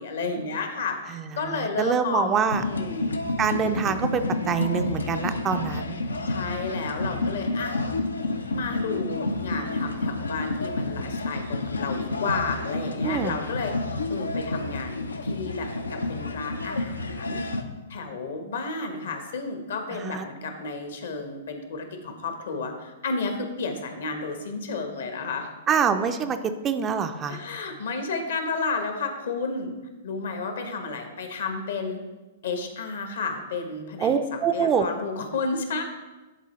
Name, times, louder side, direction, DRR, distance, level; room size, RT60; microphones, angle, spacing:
voice 1, 0.0-3.2 6.3-7.8 8.5-13.7 14.1-17.5 17.9-25.5 27.3-29.7 30.0-32.0 32.4-35.8, left 4 dB, 65° left, 6 dB, 1.0 m, -32 dB
voice 2, 1.1-2.6 3.4-6.0 13.0-13.4 19.9-20.3 25.7-26.4 26.6-27.4 34.0-34.8, right 6 dB, 25° right, 8 dB, 0.4 m, -25 dB
sound 1, 2.5-17.6, left 2 dB, 80° left, 0.6 m, -30 dB
10.5 x 4.0 x 3.1 m, 1.2 s
figure-of-eight pair, 110°, 0 cm